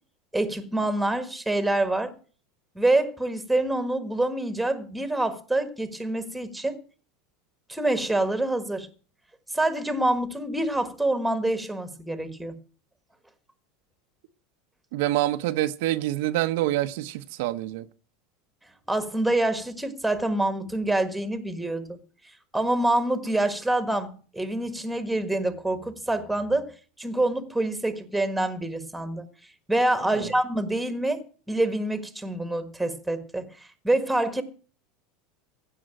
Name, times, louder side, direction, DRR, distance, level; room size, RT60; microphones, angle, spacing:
voice 1, 0.3-2.1 2.7-6.8 7.7-8.9 9.5-12.6 18.9-22.0 22.5-26.7 27.0-29.2 29.7-33.5 33.8-34.4, right 1 dB, 5° right, 1.5 m, -26 dB
voice 2, 14.9-17.8 30.1-30.3, right 15 dB, 70° right, 0.8 m, -26 dB
16.0 x 5.8 x 8.8 m
supercardioid pair, 150°, 0 cm